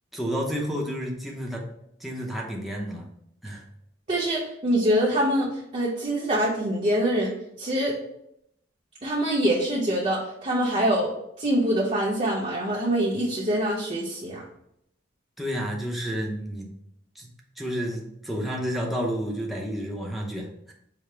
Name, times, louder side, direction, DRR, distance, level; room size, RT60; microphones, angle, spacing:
voice 1, 0.1-1.7 2.0-3.1 3.4-3.6 15.4-16.7 17.2-17.3 17.6-20.7, equal, ahead, -2 dB, 0.6 m, -30 dB
voice 2, 4.1-7.3 7.6-7.9 9.0-14.4, right 1 dB, 35° right, -4 dB, 0.7 m, -24 dB
4.9 x 2.0 x 4.4 m, 0.75 s
head